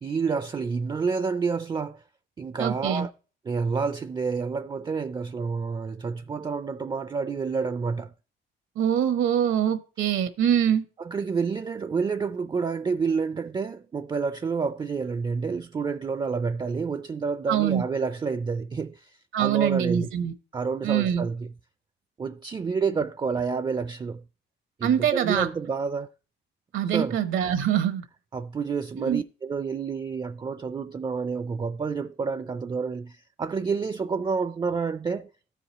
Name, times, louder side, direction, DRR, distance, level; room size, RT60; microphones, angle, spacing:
voice 1, 0.0-2.0 2.4-3.1 3.4-8.1 11.0-20.1 20.5-21.5 22.2-24.2 24.8-26.1 26.8-27.2 28.3-35.3, right 5 dB, 20° right, 0.4 m, -29 dB
voice 2, 2.6-3.1 8.8-10.8 17.5-17.8 19.3-20.3 20.8-21.3 24.8-25.5 26.7-28.0 29.0-29.2, right 9 dB, 80° right, 1.0 m, -24 dB
14.5 x 4.9 x 2.9 m
cardioid pair, 90°, 20 cm